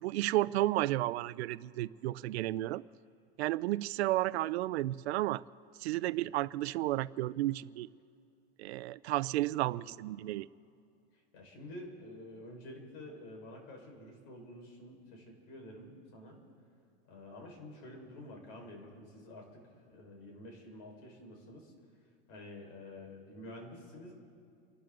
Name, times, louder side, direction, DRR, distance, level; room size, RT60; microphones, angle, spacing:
voice 1, 0.0-2.8 3.4-5.4 5.8-7.9 8.6-10.5, right 16 dB, 85° right, 0.6 m, -32 dB
voice 2, 9.6-10.0 11.1-16.4 17.1-21.7 22.3-24.1, left 1 dB, 55° left, 5.1 m, -49 dB
30.0 x 12.0 x 3.9 m
supercardioid pair, 145°, 32 cm